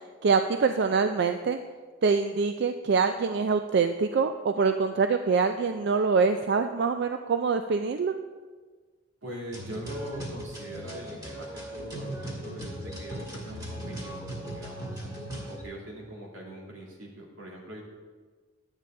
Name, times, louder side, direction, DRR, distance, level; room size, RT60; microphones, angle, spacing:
voice 1, 0.2-1.6 2.0-8.1, right 5 dB, 60° right, 7 dB, 0.4 m, -25 dB
voice 2, 9.2-15.0 15.5-17.8, right 1 dB, 85° right, -2 dB, 2.5 m, -42 dB
sound 1, 9.5-15.6, right 1 dB, 20° right, 2.1 m, -38 dB
11.5 x 8.9 x 3.7 m, 1.5 s
head